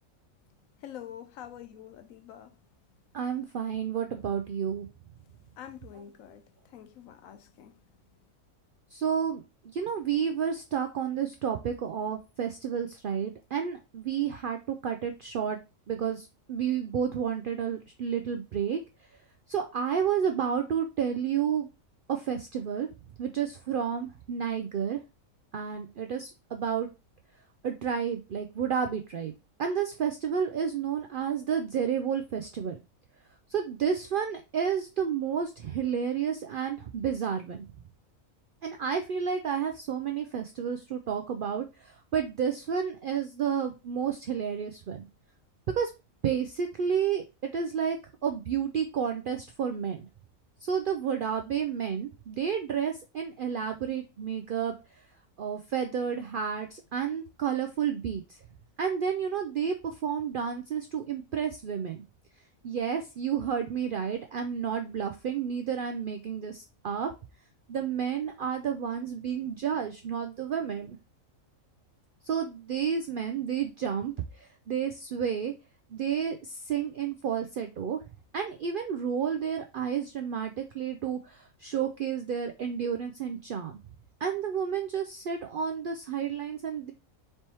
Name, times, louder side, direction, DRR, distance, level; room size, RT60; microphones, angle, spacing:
voice 1, 0.8-2.6 5.3-7.8, left 10 dB, 80° left, 1.0 m, -46 dB
voice 2, 3.1-4.9 8.9-15.6 15.9-18.8 19.5-21.7 22.1-22.9 23.2-25.0 25.5-26.9 27.6-29.3 29.6-32.8 33.5-37.6 38.6-45.1 45.8-45.9 46.2-48.0 48.2-50.1 50.6-55.0 55.4-58.4 58.8-62.0 62.6-67.1 67.7-71.0 72.2-75.5 75.9-78.0 78.3-83.7 84.2-86.9, right 7 dB, 75° right, 0.5 m, -31 dB
4.3 x 3.3 x 2.9 m
omnidirectional pair, 1.4 m